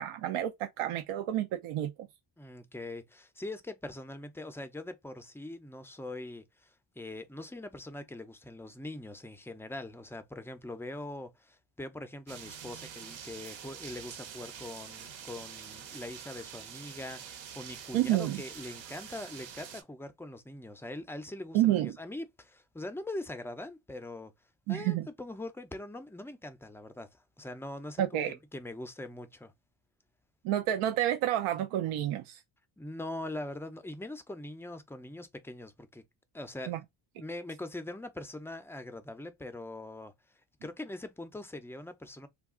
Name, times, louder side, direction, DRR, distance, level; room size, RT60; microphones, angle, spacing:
voice 1, 0.0-1.9 17.9-18.4 21.5-21.9 24.7-25.1 28.0-28.4 30.4-32.4 36.7-36.8, right 12 dB, 85° right, 0.6 m, -29 dB
voice 2, 2.4-24.3 24.7-29.5 32.8-36.0 36.3-36.7 37.2-40.1 40.6-42.3, left 1 dB, 5° left, 0.3 m, -42 dB
sound 1, 12.3-19.8, right 8 dB, 65° right, 0.9 m, -46 dB
2.3 x 2.3 x 3.6 m
cardioid pair, 95°, 49 cm